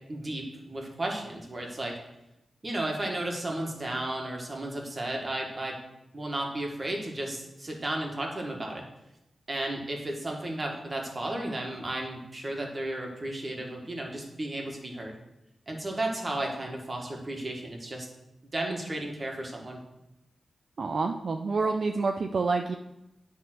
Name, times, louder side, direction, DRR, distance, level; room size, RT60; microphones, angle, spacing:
voice 1, 0.1-1.9 2.6-5.7 6.1-8.8 9.5-15.2 15.7-18.1 18.5-19.8, right 1 dB, 30° right, 0 dB, 1.6 m, -33 dB
voice 2, 20.8-22.8, right 4 dB, 55° right, 4 dB, 0.4 m, -28 dB
10.0 x 3.6 x 6.1 m, 0.91 s
wide cardioid pair, 110°, 0 cm